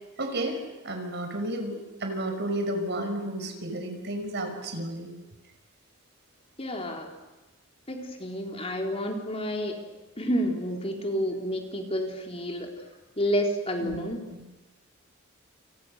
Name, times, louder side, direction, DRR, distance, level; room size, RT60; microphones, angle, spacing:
voice 1, 0.2-5.1 13.8-14.0 14.3-14.4, right 1 dB, 55° right, 5 dB, 5.9 m, -32 dB
voice 2, 6.6-7.1 7.9-9.8 10.2-12.7 13.2-14.2, equal, 30° left, 2 dB, 4.0 m, -29 dB
29.5 x 29.5 x 6.7 m, 1.1 s
head